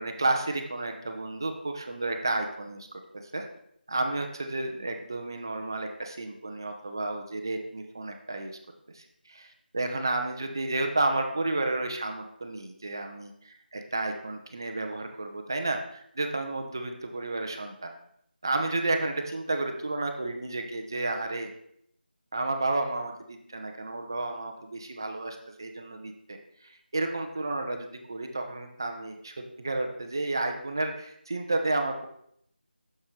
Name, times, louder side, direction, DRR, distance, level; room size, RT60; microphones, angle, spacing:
voice 1, 0.0-2.9 3.3-3.5 3.9-8.6 8.9-17.9 18.4-21.5 22.3-26.4 26.6-32.1, right 2 dB, 25° right, 4 dB, 0.4 m, -31 dB
7.0 x 6.4 x 3.1 m, 0.71 s
figure-of-eight pair, 175°, 6 cm